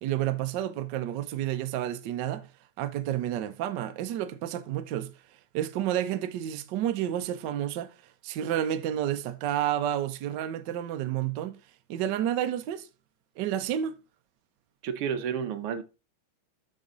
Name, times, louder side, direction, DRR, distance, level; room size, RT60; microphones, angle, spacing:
voice 1, 0.0-2.5 2.8-5.1 5.5-7.9 8.2-11.6 11.9-12.9 13.4-14.0, right 11 dB, 65° right, 1.2 m, -30 dB
voice 2, 14.8-15.8, right 7 dB, 85° right, 1.8 m, -31 dB
7.7 x 6.4 x 3.9 m
omnidirectional pair, 2.4 m